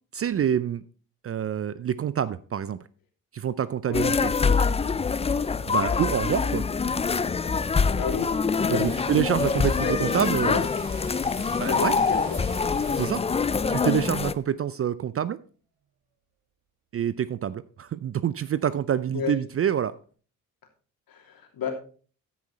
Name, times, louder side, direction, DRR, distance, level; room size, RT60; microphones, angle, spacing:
voice 1, 0.1-0.8 1.2-2.8 3.3-4.3 5.7-6.6 8.7-10.6 11.6-12.0 13.0-13.2 13.7-15.4 16.9-19.9, right 9 dB, 35° right, 18 dB, 0.5 m, -27 dB
sound 1, 3.9-14.3, left 5 dB, 15° left, 0.5 m, -25 dB
voice 2, 8.0-8.3 8.6-9.0 9.6-10.6 11.6-12.4 19.1-19.3 21.1-21.7, left 6 dB, 55° left, 3 dB, 3.0 m, -32 dB
sound 2, 8.2-14.4 14.7-14.9, right 7 dB, 70° right, 1.6 m, -48 dB
14.0 x 6.2 x 4.2 m, 0.40 s
hypercardioid pair, 50°, 43 cm